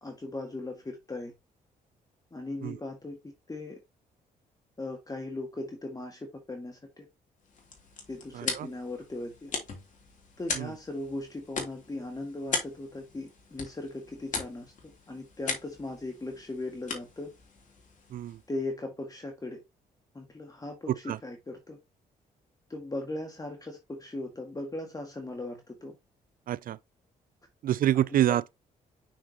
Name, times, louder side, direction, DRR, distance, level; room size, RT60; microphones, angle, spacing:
voice 1, 0.0-1.3 2.3-3.8 4.8-7.1 8.1-9.5 10.4-17.3 18.5-19.6 20.1-21.8 22.7-25.9 28.1-28.2, left 2 dB, 20° left, 1.7 m, -38 dB
sound 1, 7.4-18.6, left 4 dB, 50° left, 3.0 m, -39 dB
voice 2, 8.3-8.7 10.5-10.7 18.1-18.4 20.9-21.2 26.5-26.8 27.6-28.5, right 12 dB, 60° right, 0.4 m, -27 dB
6.2 x 6.1 x 2.8 m
cardioid pair, 70°, 16 cm